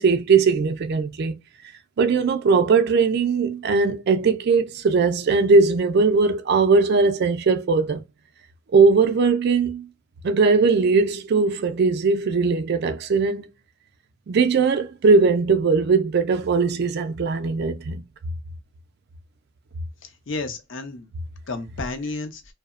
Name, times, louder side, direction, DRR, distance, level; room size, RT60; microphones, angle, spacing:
voice 1, 0.0-1.4 2.0-8.0 8.7-9.9 10.2-13.5 14.3-18.0, right 4 dB, 50° right, 0.3 m, -19 dB
voice 2, 20.0-21.1 21.5-22.4, left 3 dB, 55° left, 0.5 m, -31 dB
2.7 x 2.0 x 2.3 m
head